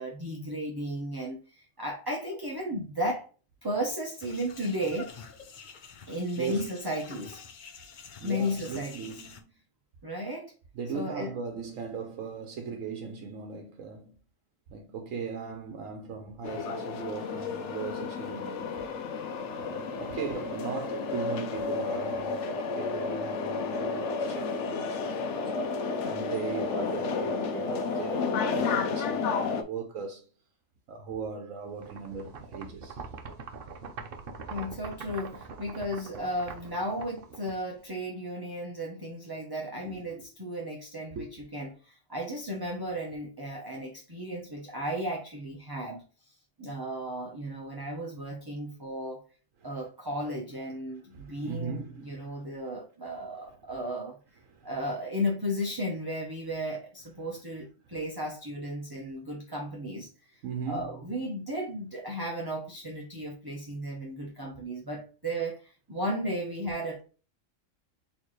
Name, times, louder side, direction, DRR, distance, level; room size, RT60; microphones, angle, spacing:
voice 1, 0.0-3.3 3.6-5.3 6.1-7.4 8.2-9.1 10.0-10.5 10.9-11.3 34.5-46.3 46.6-49.2 49.6-54.2 54.6-60.4 60.7-67.0, equal, 20° right, 0.8 m, -34 dB
sound 1, 4.2-9.4, left 6 dB, 50° left, 0.6 m, -48 dB
voice 2, 6.4-6.7 8.2-9.3 10.7-14.2 14.7-18.8 19.5-30.2 30.9-33.0 39.8-40.3 41.2-41.3 51.1-52.3 54.5-54.7 60.4-61.0, right 5 dB, 80° right, 1.1 m, -38 dB
sound 2, 16.4-29.6, left 4 dB, 70° left, 0.9 m, -31 dB
sound 3, 31.8-37.9, right 4 dB, 50° right, 0.8 m, -43 dB
4.5 x 3.2 x 3.1 m
omnidirectional pair, 1.3 m